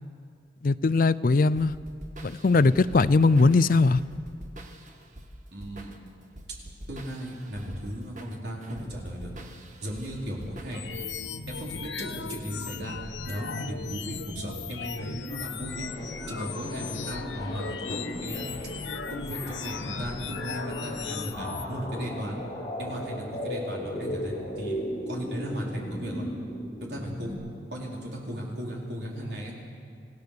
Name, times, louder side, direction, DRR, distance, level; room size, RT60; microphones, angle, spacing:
voice 1, 0.6-1.7 2.2-4.0, left 3 dB, 50° left, 16 dB, 0.4 m, -20 dB
sound 1, 1.6-11.1, right 1 dB, 45° right, 1.6 m, -46 dB
voice 2, 5.5-5.9 6.9-9.3 9.8-10.9 11.5-13.0 13.3-15.9 16.3-18.5 19.1-22.4 22.8-24.8 25.1-26.3 26.8-27.4 27.7-29.5, equal, 65° right, -2 dB, 4.4 m, -36 dB
sound 2, 10.7-21.7, left 5 dB, 85° left, 0.9 m, -37 dB
sound 3, 15.7-27.3, equal, 25° left, 4.9 m, -37 dB
26.5 x 16.0 x 6.8 m, 2.3 s
head